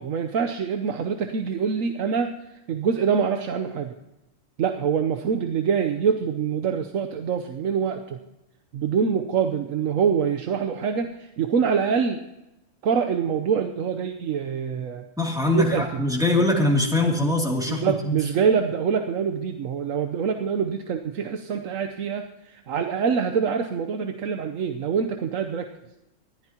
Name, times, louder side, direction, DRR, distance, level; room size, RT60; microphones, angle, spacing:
voice 1, 0.0-2.3 2.7-3.9 4.6-8.2 8.7-12.2 12.8-15.0 15.5-16.0 17.7-25.7, right 6 dB, 85° right, 7 dB, 1.2 m, -25 dB
voice 2, 15.2-18.2, left 2 dB, 5° right, -1 dB, 2.6 m, -22 dB
20.5 x 15.0 x 2.9 m, 0.96 s
omnidirectional pair, 1.3 m